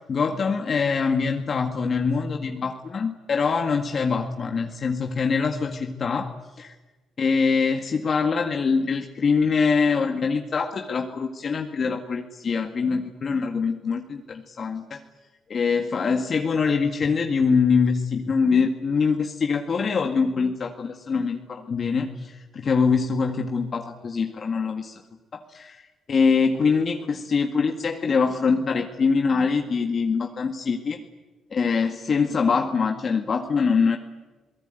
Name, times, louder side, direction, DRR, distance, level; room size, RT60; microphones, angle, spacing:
voice 1, 0.1-6.7 7.2-14.0 14.3-15.0 15.5-25.0 25.3-31.0 31.5-34.0, left 5 dB, 45° left, 4 dB, 1.9 m, -24 dB
27.5 x 18.5 x 9.2 m, 1.2 s
cardioid pair, 90°, 0 cm